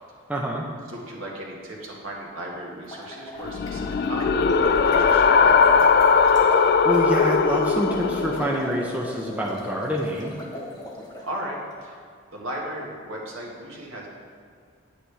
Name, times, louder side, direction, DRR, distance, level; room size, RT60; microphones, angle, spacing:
voice 1, 0.3-0.7 6.5-10.3, equal, 5° right, -2 dB, 0.6 m, -27 dB
voice 2, 0.9-5.9 11.2-12.0 12.3-14.1, right 1 dB, 70° right, -2 dB, 1.8 m, -36 dB
sound 1, 2.7-11.2, left 1 dB, 20° left, 1.1 m, -39 dB
sound 2, 3.4-8.6, left 5 dB, 45° left, 0.3 m, -19 dB
9.1 x 8.6 x 3.4 m, 2.2 s
head